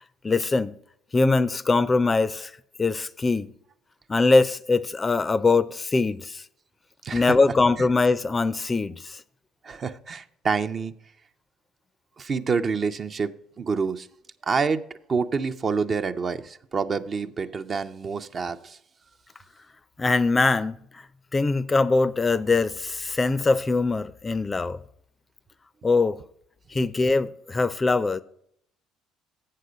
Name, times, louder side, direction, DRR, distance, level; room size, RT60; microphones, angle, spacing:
voice 1, 0.2-0.7 1.1-2.5 2.8-3.5 4.1-6.4 7.1-9.2 20.0-20.8 21.3-24.8 25.8-26.2 26.7-28.2, left 3 dB, 25° left, 0.4 m, -22 dB
voice 2, 7.0-7.3 7.8-7.9 9.6-10.9 12.2-13.3 13.6-14.1 14.4-14.8 15.1-18.8, right 5 dB, 40° right, 0.5 m, -27 dB
7.7 x 6.6 x 5.0 m
hypercardioid pair, 60°, 0 cm